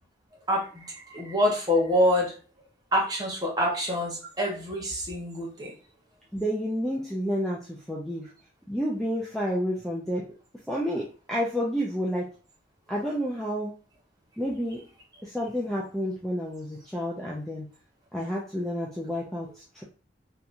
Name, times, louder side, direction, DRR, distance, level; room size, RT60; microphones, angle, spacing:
voice 1, 0.5-2.3 2.9-5.7, equal, 20° right, -2 dB, 1.0 m, -26 dB
voice 2, 6.3-8.3 8.7-10.2 10.7-12.3 12.9-13.7 14.4-14.8 15.2-17.7 18.1-19.8, equal, ahead, -4 dB, 0.4 m, -30 dB
3.5 x 2.9 x 2.5 m, 0.37 s
head